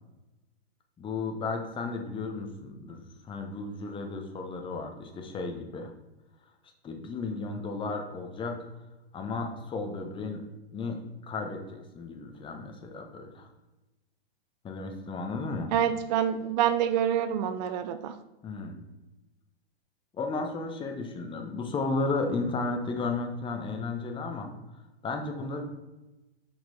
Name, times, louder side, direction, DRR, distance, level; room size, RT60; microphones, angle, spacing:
voice 1, 1.0-5.9 6.8-8.6 9.1-10.4 10.7-13.5 14.6-15.7 18.4-18.8 20.1-24.5 25.0-25.6, left 3 dB, 15° left, 4 dB, 1.0 m, -34 dB
voice 2, 15.7-18.1, right 9 dB, 45° right, 10 dB, 0.6 m, -27 dB
5.7 x 5.4 x 4.2 m, 1.0 s
hypercardioid pair, 120°, 31 cm